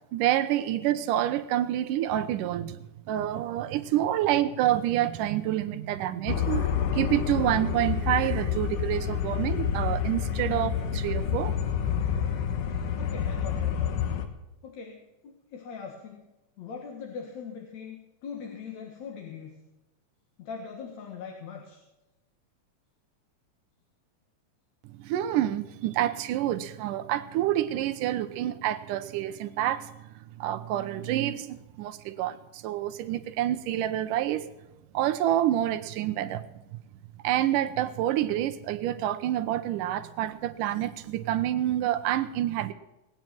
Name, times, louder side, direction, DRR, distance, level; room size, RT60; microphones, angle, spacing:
voice 1, 0.1-2.8 3.1-11.5 25.0-29.9 30.4-34.5 34.9-36.5 37.2-42.7, right 12 dB, 80° right, 2.4 m, -28 dB
sound 1, 6.3-14.3, left 8 dB, 80° left, 2.8 m, -28 dB
voice 2, 13.0-14.0 14.6-16.2 16.6-18.0 18.2-19.6 20.4-21.8, left 6 dB, 60° left, 2.7 m, -41 dB
19.0 x 9.4 x 6.0 m
omnidirectional pair, 3.7 m